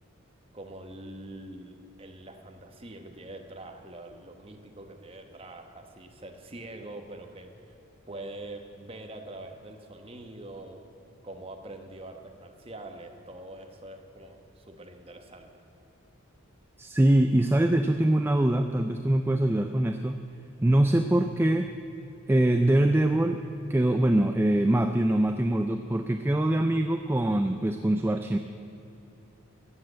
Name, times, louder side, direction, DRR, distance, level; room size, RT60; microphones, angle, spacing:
voice 1, 0.5-7.8 8.1-10.9 11.2-15.5, right 1 dB, 25° right, 5 dB, 1.0 m, -44 dB
voice 2, 16.8-20.2 20.6-21.7 22.3-23.4 23.7-28.4, right 1 dB, 10° right, 7 dB, 0.3 m, -23 dB
14.5 x 7.7 x 8.6 m, 2.9 s
head